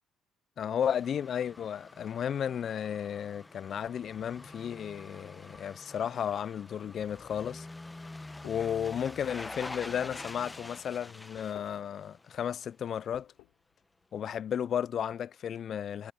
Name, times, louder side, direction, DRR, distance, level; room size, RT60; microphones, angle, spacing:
voice 1, 0.6-7.7 8.4-13.3 14.1-16.1, left 8 dB, 55° left, 0.5 m, -33 dB
sound 1, 0.8-12.7 13.0-13.1, left 2 dB, 15° left, 1.0 m, -47 dB
sound 2, 8.4-8.7 9.4-9.5 9.8-9.9 10.1-10.8 11.3-11.9 12.3-12.4 12.6-13.7, left 21 dB, 85° left, 5.2 m, -52 dB
supercardioid pair, 70°, 0 cm